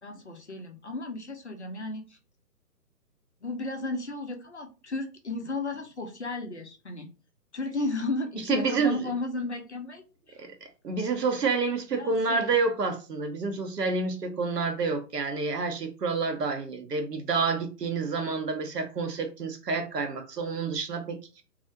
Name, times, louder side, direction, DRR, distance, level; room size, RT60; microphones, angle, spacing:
voice 1, 0.0-2.2 3.4-7.1 7.5-10.4 11.9-12.5, left 2 dB, 45° left, 0.4 m, -34 dB
voice 2, 8.5-9.0 10.4-21.4, right 4 dB, 75° right, 0.7 m, -29 dB
2.4 x 2.0 x 2.8 m
figure-of-eight pair, 135°, 48 cm